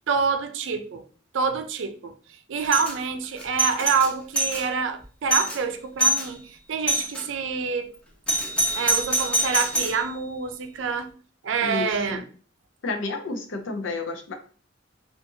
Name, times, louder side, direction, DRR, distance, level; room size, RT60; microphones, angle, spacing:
voice 1, 0.1-1.0 1.3-2.1 2.5-6.4 6.7-7.9 8.8-11.1 11.4-12.2, right 5 dB, 75° right, 0.4 m, -26 dB
Doorbell, 2.6-2.9 3.4-4.6 5.0-5.1 5.3-5.6 6.0-6.3 6.9-7.2 8.3-10.0, right 1 dB, 5° left, 0.6 m, -24 dB
voice 2, 11.6-12.2 12.8-14.3, left 3 dB, 75° left, 0.5 m, -31 dB
2.5 x 2.4 x 2.7 m
head